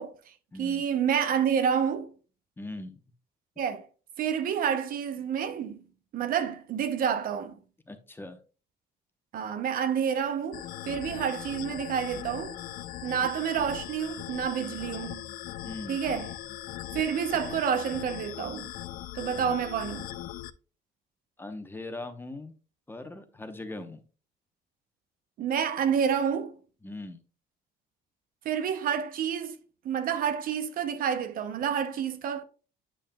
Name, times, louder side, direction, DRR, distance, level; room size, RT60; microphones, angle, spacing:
voice 1, 0.0-0.3 0.6-2.1 3.6-3.9 4.2-5.8 6.1-7.6 9.3-12.6 13.0-15.3 15.9-16.3 16.9-18.7 19.1-20.1 25.4-26.6 28.4-29.6 29.8-32.4, right 8 dB, 55° right, 0.7 m, -29 dB
voice 2, 0.5-0.9 2.6-3.0 7.9-8.4 15.6-16.0 19.4-19.5 21.4-22.5 22.9-24.0 26.8-27.2, left 2 dB, 15° left, 0.8 m, -40 dB
sound 1, 10.5-20.5, left 12 dB, 60° left, 0.4 m, -39 dB
8.6 x 5.4 x 2.2 m
cardioid pair, 110°, 17 cm